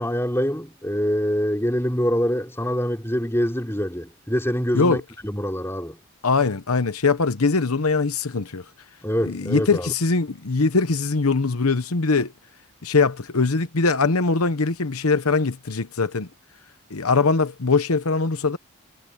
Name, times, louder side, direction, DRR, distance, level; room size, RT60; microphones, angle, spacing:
voice 1, 0.0-6.0 9.0-9.9, equal, 10° left, 4.0 m, -25 dB
voice 2, 6.2-8.6 9.3-12.3 12.8-16.3 16.9-18.6, left 4 dB, 85° left, 1.0 m, -21 dB
head